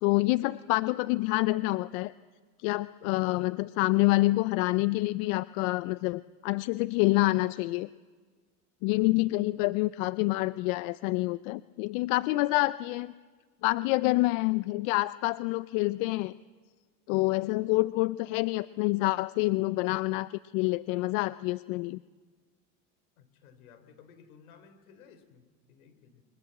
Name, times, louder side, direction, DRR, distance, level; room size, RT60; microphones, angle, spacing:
voice 1, 0.0-2.1 2.6-7.9 8.8-13.1 13.6-16.3 17.1-22.0, left 21 dB, 70° left, 16 dB, 0.7 m, -27 dB
voice 2, 8.9-9.2 23.2-26.2, left 6 dB, 85° left, 10 dB, 3.6 m, -56 dB
28.0 x 23.5 x 7.8 m, 1.5 s
supercardioid pair, 100°, 42 cm